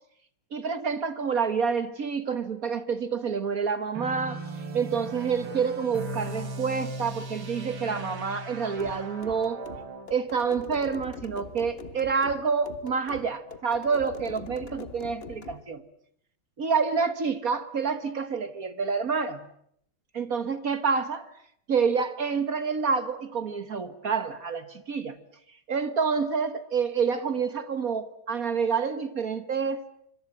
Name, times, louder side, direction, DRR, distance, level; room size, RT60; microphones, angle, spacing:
voice 1, 0.5-4.4 4.7-9.6 10.1-15.8 16.6-19.4 20.1-21.3 21.7-25.2 25.7-29.8, right 5 dB, 45° right, 1.6 m, -28 dB
sound 1, 3.9-10.1, right 2 dB, 75° right, 3.6 m, -38 dB
sound 2, 8.8-15.6, left 5 dB, 35° left, 1.4 m, -43 dB
26.0 x 25.5 x 8.8 m
omnidirectional pair, 2.2 m